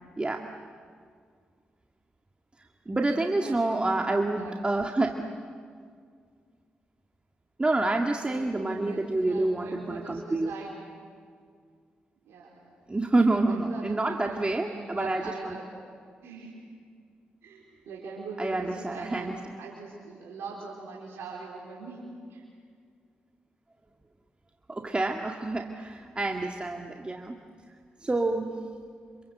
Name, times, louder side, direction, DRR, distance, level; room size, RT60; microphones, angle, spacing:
voice 1, 0.2-0.5 2.9-5.3 7.6-10.5 12.9-15.6 18.4-19.3 24.7-27.4 28.0-28.5, right 2 dB, 25° right, 2 dB, 2.1 m, -28 dB
voice 2, 3.2-4.5 8.2-10.8 12.2-12.8 13.4-15.7 16.2-16.6 17.4-22.4, right 3 dB, 75° right, -3 dB, 4.3 m, -42 dB
27.0 x 26.5 x 8.0 m, 2.1 s
hypercardioid pair, 40°, 4 cm